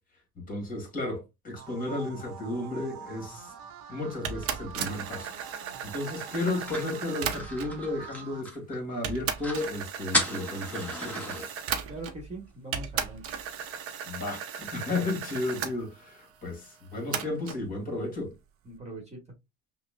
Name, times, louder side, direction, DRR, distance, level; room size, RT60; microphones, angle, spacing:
voice 1, 0.4-3.5 3.9-11.5 14.1-18.3, left 2 dB, 25° left, 2.0 m, -34 dB
sound 1, 1.6-8.4, right 7 dB, 75° right, 1.0 m, -46 dB
sound 2, 4.2-7.8 8.6-8.7 9.0-12.3 12.7-15.7 17.1-17.6, right 8 dB, 45° right, 0.8 m, -36 dB
sound 3, 6.4-8.8 9.1-9.2 9.4-9.7 10.1-11.4, left 1 dB, 5° left, 1.2 m, -33 dB
voice 2, 11.9-13.4 18.6-19.2, right 1 dB, 20° right, 1.4 m, -41 dB
5.7 x 2.2 x 2.4 m
supercardioid pair, 110°, 33 cm